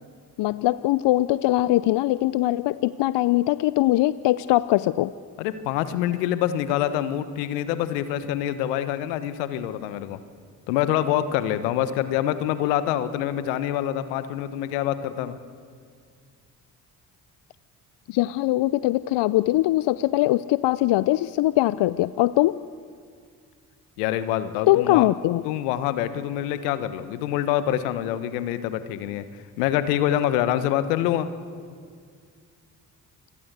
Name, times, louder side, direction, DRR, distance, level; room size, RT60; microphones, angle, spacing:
voice 1, 0.4-5.1 18.1-22.6 24.7-25.4, left 16 dB, 65° left, 17 dB, 0.7 m, -21 dB
voice 2, 5.4-10.2 10.7-15.4 24.0-25.1 25.4-29.3 29.6-31.3, left 11 dB, 85° left, 13 dB, 1.2 m, -25 dB
28.0 x 21.0 x 8.1 m, 2.1 s
hypercardioid pair, 45°, 45 cm